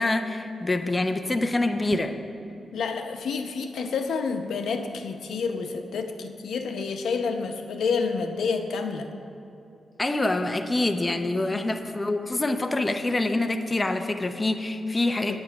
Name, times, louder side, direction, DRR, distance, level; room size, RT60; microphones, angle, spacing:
voice 1, 0.0-2.1 10.0-15.4, left 2 dB, 20° left, 7 dB, 0.6 m, -26 dB
sound 1, 1.8-2.3, right 5 dB, 60° right, 0.3 m, -35 dB
voice 2, 2.7-9.1 11.4-11.6 15.3-15.4, left 5 dB, 90° left, 6 dB, 0.8 m, -29 dB
9.0 x 8.9 x 5.8 m, 2.7 s
wide cardioid pair, 125°, 0 cm